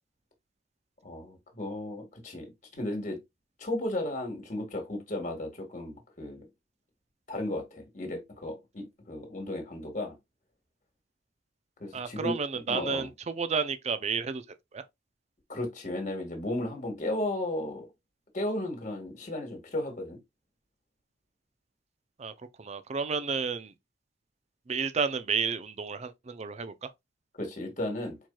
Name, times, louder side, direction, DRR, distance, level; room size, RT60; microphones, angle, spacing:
voice 1, 1.0-3.2 3.6-6.5 7.3-10.1 11.8-12.4 12.7-13.1 15.5-17.9 18.3-20.2 27.4-28.2, left 1 dB, 40° left, 1.5 m, -34 dB
voice 2, 11.9-14.4 14.7-14.8 22.2-23.7 24.7-26.9, right 5 dB, 35° right, 0.5 m, -31 dB
4.6 x 4.4 x 2.2 m
head